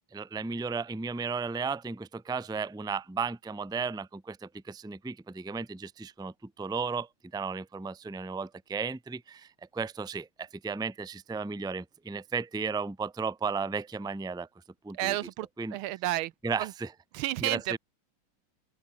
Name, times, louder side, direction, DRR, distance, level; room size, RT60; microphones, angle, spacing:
voice 1, 0.1-14.5 14.8-15.2 15.6-15.8 16.4-16.9 17.4-17.8, right 5 dB, 5° right, 0.8 m, -34 dB
voice 2, 14.9-15.5 15.7-16.3 16.6-16.7 17.1-17.8, right 15 dB, 80° right, 1.4 m, -31 dB
open air
omnidirectional pair, 2.4 m